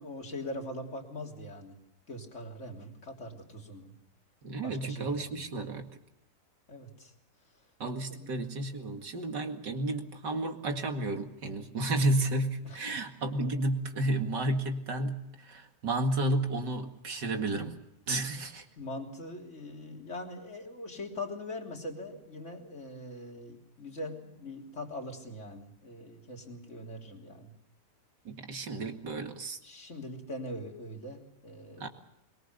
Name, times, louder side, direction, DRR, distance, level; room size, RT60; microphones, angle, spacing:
voice 1, 0.0-1.8 2.1-3.9 4.6-5.5 6.7-7.1 8.1-8.3 12.6-13.0 18.8-27.5 29.6-31.9, left 1 dB, 40° left, 2 dB, 3.6 m, -42 dB
voice 2, 4.4-5.9 7.8-17.8 18.1-18.7 28.2-29.6 31.8-31.9, right 2 dB, 75° right, 5 dB, 2.7 m, -32 dB
23.0 x 22.5 x 6.7 m, 0.81 s
omnidirectional pair, 1.9 m